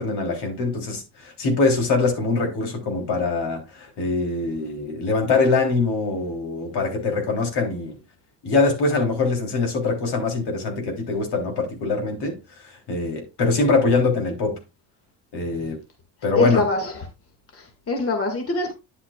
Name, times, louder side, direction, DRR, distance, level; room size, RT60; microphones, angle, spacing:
voice 1, 0.0-8.0 8.4-14.6 15.3-15.8 16.2-16.6, left 3 dB, 65° left, 3.4 m, -23 dB
voice 2, 16.4-17.0 17.5-18.7, left 3 dB, 30° left, 2.1 m, -24 dB
10.0 x 8.0 x 2.4 m
cardioid pair, 95°, 43 cm